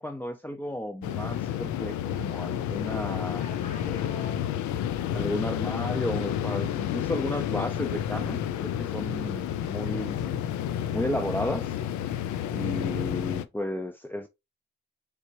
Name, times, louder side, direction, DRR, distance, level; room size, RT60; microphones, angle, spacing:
voice 1, 0.0-3.4 5.1-10.4 10.9-11.8 12.5-14.3, left 1 dB, 5° left, 0.5 m, -33 dB
sound 1, 1.0-13.5, left 10 dB, 70° left, 0.5 m, -30 dB
voice 2, 3.1-5.2, equal, 25° left, 2.0 m, -46 dB
4.0 x 3.4 x 2.7 m
hypercardioid pair, 45°, 30 cm